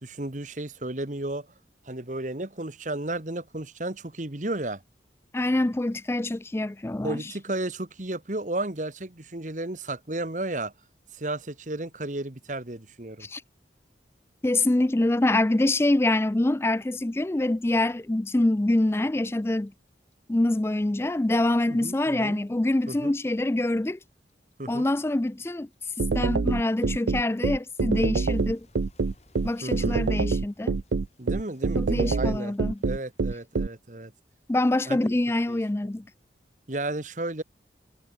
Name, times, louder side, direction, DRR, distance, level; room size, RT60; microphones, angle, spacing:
voice 1, 0.0-1.5 1.9-4.8 7.0-10.7 11.2-13.3 21.7-22.4 22.9-23.1 24.6-24.9 29.6-30.1 31.2-32.5 32.8-34.1 34.9-35.1 35.5-35.6 36.7-37.4, right 2 dB, 45° right, 1.5 m, -33 dB
voice 2, 5.3-7.3 13.2-13.4 14.4-19.7 20.3-24.0 24.7-25.7 26.1-28.7 29.4-30.8 31.8-32.8 34.5-36.1, left 1 dB, 15° left, 0.4 m, -25 dB
Clock, 18.5-21.5 21.8-24.8 25.0-33.9, left 1 dB, 35° left, 7.0 m, -62 dB
sound 1, 26.0-33.7, right 4 dB, 75° right, 0.5 m, -25 dB
head